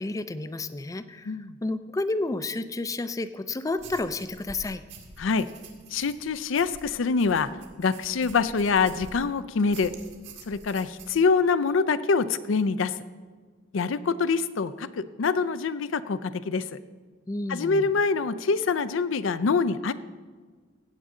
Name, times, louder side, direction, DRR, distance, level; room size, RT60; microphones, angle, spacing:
voice 1, 0.0-4.8 17.3-17.9, left 2 dB, 15° left, 12 dB, 0.4 m, -31 dB
sound 1, 3.8-9.3 9.7-11.2, right 3 dB, 70° right, 1.9 m, -47 dB
voice 2, 5.2-5.5 5.9-7.5 7.8-9.9 10.5-12.9 13.7-16.7 17.5-19.9, left 4 dB, 80° left, 15 dB, 0.5 m, -25 dB
16.0 x 8.3 x 3.7 m, 1.5 s
head